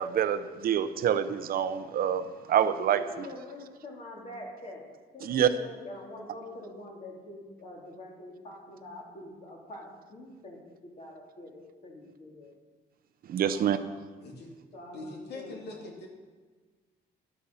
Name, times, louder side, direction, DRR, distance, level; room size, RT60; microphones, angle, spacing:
voice 1, 0.0-2.2 2.5-3.3 5.2-5.5 13.3-13.8, right 9 dB, 60° right, 11 dB, 0.8 m, -26 dB
voice 2, 2.9-4.9 5.1-10.6 11.0-12.5 13.4-14.0 14.7-15.9, left 1 dB, 40° left, -1 dB, 3.6 m, -45 dB
voice 3, 14.9-16.1, left 2 dB, 75° left, 1 dB, 2.8 m, -42 dB
11.5 x 11.5 x 5.7 m, 1.4 s
cardioid pair, 135°, 17 cm